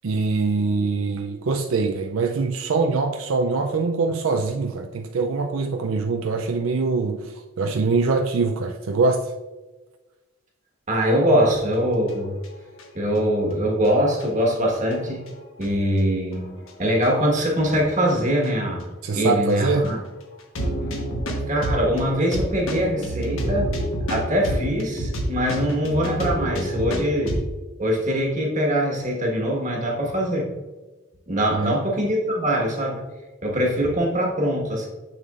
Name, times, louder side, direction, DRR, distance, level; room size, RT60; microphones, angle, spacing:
voice 1, 0.0-9.3 19.0-19.9 31.5-31.8, right 4 dB, 75° right, 4 dB, 0.5 m, -23 dB
voice 2, 10.9-12.4 12.9-15.2 15.6-16.5 16.8-20.0 21.5-23.7 24.1-27.3 27.8-30.5 31.3-33.0 33.4-34.9, equal, 35° right, -1 dB, 1.4 m, -23 dB
sound 1, 12.1-12.8 13.2-13.3 13.9-14.0 14.2-14.3 14.8-15.7 16.3-16.7 17.0-17.1 17.7-18.2 18.4-18.5 18.8-18.9 19.5-19.6 19.8-19.9 20.4-27.5, right 1 dB, 75° left, 1.3 m, -28 dB
6.9 x 6.8 x 2.5 m, 1.2 s
head